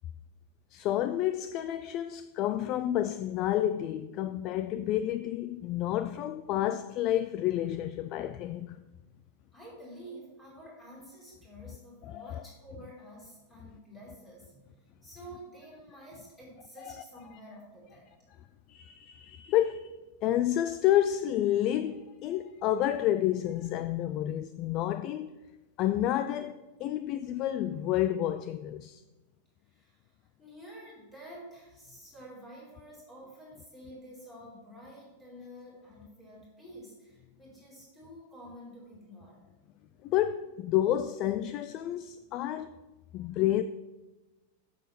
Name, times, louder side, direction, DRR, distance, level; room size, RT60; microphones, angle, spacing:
voice 1, 0.7-8.8 12.0-12.4 16.8-16.9 17.3-17.4 18.7-20.0 20.2-25.4 25.8-29.0 40.0-42.8 43.1-43.6, left 12 dB, 30° left, 0.3 m, -30 dB
voice 2, 9.5-14.6 15.0-18.0 29.6-39.4, equal, 5° left, 3.9 m, -49 dB
9.1 x 7.5 x 5.8 m
supercardioid pair, 170°, 0 cm